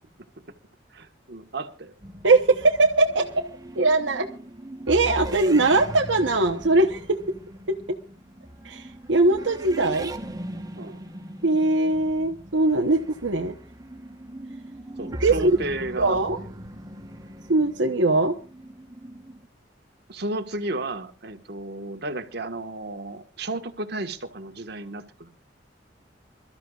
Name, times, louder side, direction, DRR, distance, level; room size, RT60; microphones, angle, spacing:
voice 1, 0.9-1.9 10.7-11.0 15.0-16.2 20.1-25.3, right 2 dB, 60° right, 5 dB, 1.5 m, -33 dB
sound 1, 2.0-19.5, right 1 dB, 20° right, 1.1 m, -40 dB
voice 2, 2.2-3.2 3.8-4.3 4.9-7.0 8.6-10.1 11.4-13.6 15.2-15.5 16.0-16.4 17.5-18.3, right 2 dB, 85° right, 3 dB, 1.0 m, -21 dB
27.0 x 13.0 x 2.4 m, 0.34 s
head